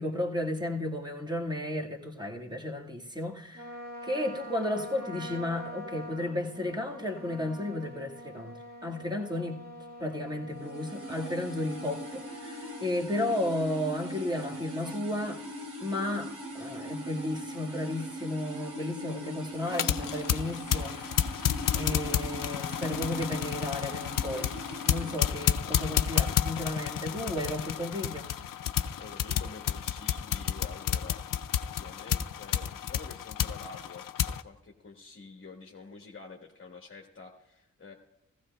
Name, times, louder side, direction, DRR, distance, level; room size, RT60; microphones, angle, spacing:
voice 1, 0.0-3.7 4.0-9.6 10.0-15.4 15.8-21.3 21.7-24.5 24.8-28.3, left 1 dB, 15° right, 0 dB, 1.7 m, -33 dB
Trumpet, 3.5-12.9, equal, 50° right, 5.0 m, -45 dB
sound 1, 10.5-25.2, right 1 dB, 65° right, 2.4 m, -41 dB
sound 2, 19.7-34.4, left 10 dB, 75° left, 0.5 m, -31 dB
voice 2, 24.9-25.4 29.0-31.2 31.7-37.9, left 4 dB, 35° left, 1 dB, 1.2 m, -48 dB
15.5 x 15.0 x 2.2 m, 0.94 s
cardioid pair, 70°, 33 cm